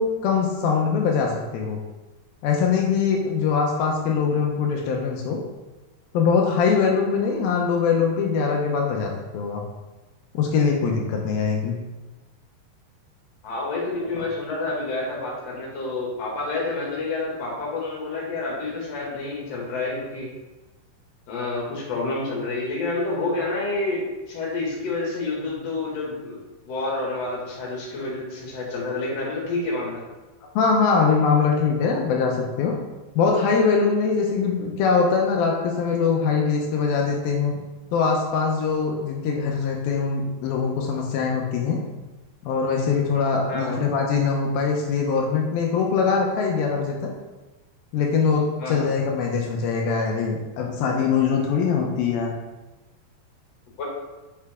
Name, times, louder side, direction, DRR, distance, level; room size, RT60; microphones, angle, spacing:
voice 1, 0.0-1.8 2.4-5.4 6.1-9.6 10.3-11.8 30.6-32.7 33.2-37.5 37.9-41.8 42.4-47.1 47.9-52.3, left 5 dB, 85° left, 0 dB, 2.7 m, -22 dB
voice 2, 13.4-20.3 21.3-26.4 26.7-30.0 43.5-43.8 48.6-48.9 53.8-53.9, left 2 dB, 50° left, -4 dB, 2.8 m, -28 dB
6.7 x 6.2 x 3.6 m, 1.1 s
omnidirectional pair, 4.2 m